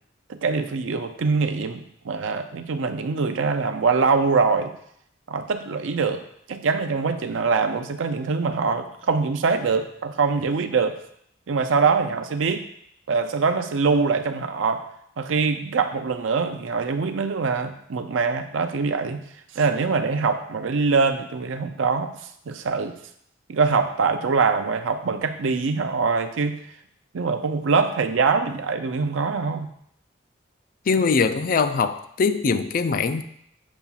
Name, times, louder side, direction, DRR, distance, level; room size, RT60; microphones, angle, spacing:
voice 1, 0.3-4.7 5.3-6.2 6.5-11.0 11.5-12.6 13.1-14.8 15.2-19.2 19.5-22.1 22.5-22.9 23.5-26.6 27.1-29.7, right 4 dB, 80° right, 8 dB, 0.5 m, -23 dB
voice 2, 30.9-33.2, left 5 dB, 45° left, 10 dB, 0.3 m, -22 dB
7.1 x 2.4 x 5.5 m, 0.70 s
head